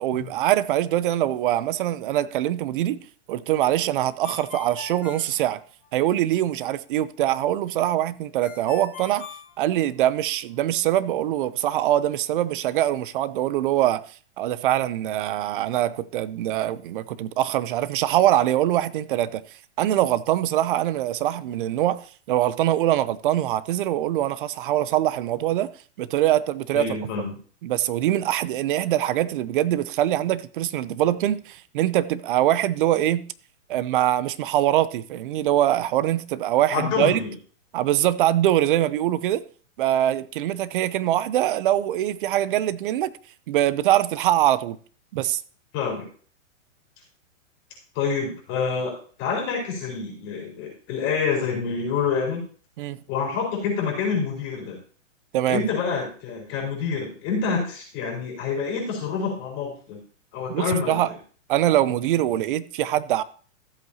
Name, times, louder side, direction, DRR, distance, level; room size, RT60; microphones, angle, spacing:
voice 1, 0.0-3.0 3.3-5.6 5.9-9.3 9.6-14.0 14.4-19.4 19.8-25.7 26.0-27.0 27.6-33.2 33.7-37.2 37.7-39.4 39.8-43.1 43.5-44.8 45.1-45.4 52.8-53.0 55.3-55.6 60.5-61.1 61.5-63.2, right 13 dB, 45° right, 0.6 m, -23 dB
Ringtone, 4.2-6.2 8.4-10.3, left 6 dB, 75° left, 2.8 m, -41 dB
voice 2, 26.7-27.4 36.7-37.3 45.7-46.1 47.9-52.5 53.1-54.8 55.5-60.0 60.3-61.1, left 5 dB, 35° left, 4.5 m, -27 dB
14.5 x 7.9 x 2.8 m
hypercardioid pair, 145°, 39 cm